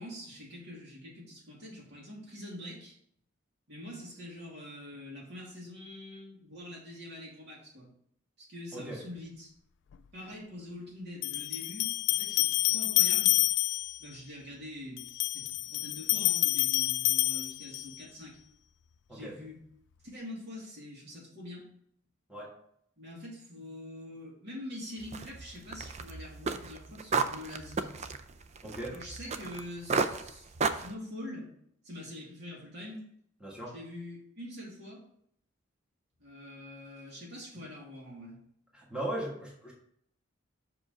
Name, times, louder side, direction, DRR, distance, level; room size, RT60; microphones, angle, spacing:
voice 1, 0.0-3.0 3.7-7.9 8.4-9.5 10.1-13.4 14.0-18.4 19.1-19.6 20.1-21.6 23.0-28.1 28.9-31.5 31.8-33.0 33.7-35.0 36.2-38.4, left 1 dB, 60° right, -4 dB, 2.7 m, -45 dB
sound 1, 9.9-10.0 11.2-14.0 15.0-18.0, left 18 dB, 65° left, 0.3 m, -28 dB
sound 2, 25.0-29.7 29.9-30.9, right 4 dB, 35° right, 0.4 m, -33 dB
voice 2, 28.6-28.9 33.4-33.7 38.7-39.7, right 1 dB, 5° right, -4 dB, 1.5 m, -38 dB
6.1 x 5.0 x 5.1 m, 0.69 s
head